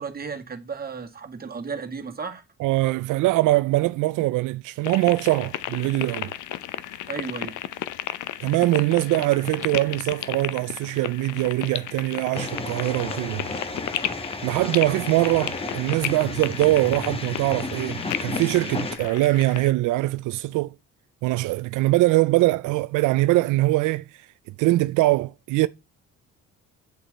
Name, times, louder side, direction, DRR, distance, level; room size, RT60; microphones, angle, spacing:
voice 1, 0.0-2.4 7.1-7.6, right 5 dB, 30° right, 1.9 m, -34 dB
voice 2, 2.6-6.3 8.4-13.4 14.4-20.7 21.2-24.3 24.6-25.7, right 18 dB, 85° right, 0.4 m, -22 dB
sound 1, 4.8-19.7, left 12 dB, 80° left, 0.8 m, -34 dB
sound 2, 12.3-19.0, left 2 dB, 20° left, 1.5 m, -33 dB
8.3 x 7.8 x 4.0 m
cardioid pair, 90°, 30 cm